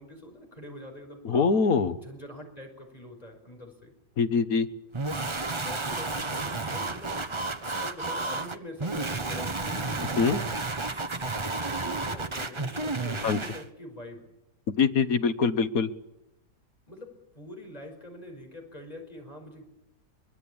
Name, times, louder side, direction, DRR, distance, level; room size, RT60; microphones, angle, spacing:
voice 1, 0.0-1.5 1.9-3.9 5.5-10.2 11.4-14.4 16.9-19.7, left 1 dB, 20° left, 3 dB, 5.4 m, -45 dB
voice 2, 1.2-2.0 4.2-4.7 10.2-10.4 13.2-13.4 14.7-15.9, left 5 dB, 60° left, 11 dB, 1.5 m, -23 dB
sound 1, 4.9-13.6, right 3 dB, 20° right, 0.9 m, -32 dB
23.0 x 21.0 x 8.7 m, 0.90 s
omnidirectional pair, 1.8 m